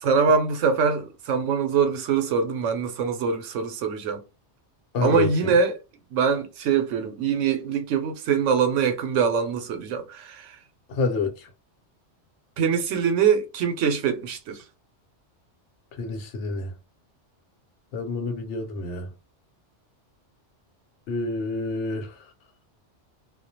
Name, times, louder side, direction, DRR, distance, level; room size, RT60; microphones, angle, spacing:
voice 1, 0.0-4.2 5.0-5.8 6.1-10.6 12.6-14.6, right 6 dB, 85° right, 1.0 m, -23 dB
voice 2, 4.9-5.5 10.9-11.5 16.0-16.7 17.9-19.1 21.1-22.2, left 3 dB, 80° left, 1.0 m, -28 dB
2.4 x 2.1 x 2.7 m
omnidirectional pair, 1.2 m